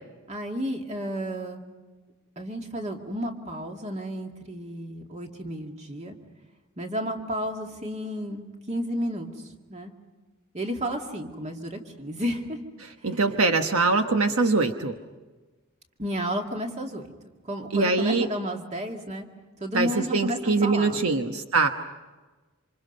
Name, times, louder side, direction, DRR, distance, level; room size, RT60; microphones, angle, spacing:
voice 1, 0.3-1.6 2.4-6.2 6.8-9.9 10.5-12.6 13.0-13.2 16.0-17.1 17.4-19.3 19.6-21.2, equal, 30° right, 3 dB, 2.1 m, -32 dB
voice 2, 13.0-15.0 17.7-18.3 19.7-21.7, right 3 dB, 75° right, 6 dB, 1.2 m, -23 dB
27.5 x 27.0 x 5.4 m, 1.2 s
head